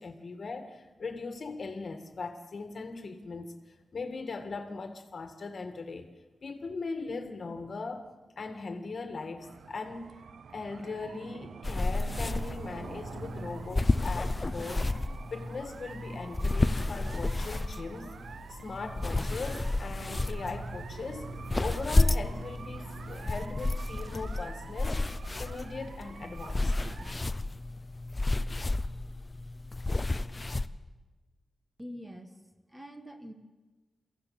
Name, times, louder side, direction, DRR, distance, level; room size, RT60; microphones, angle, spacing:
voice 1, 0.0-3.5 3.9-6.1 6.4-8.0 8.4-10.1 10.5-15.0 15.3-18.1 18.5-21.3 21.6-26.7, left 4 dB, 55° left, 7 dB, 1.9 m, -39 dB
sound 1, 9.4-27.1, right 6 dB, 90° right, 0.6 m, -46 dB
sound 2, 11.6-30.7, left 2 dB, 25° left, 0.6 m, -31 dB
voice 2, 31.8-32.4 32.7-33.3, equal, 15° right, 7 dB, 1.6 m, -44 dB
23.5 x 15.0 x 8.6 m, 1.2 s
wide cardioid pair, 115°, 0 cm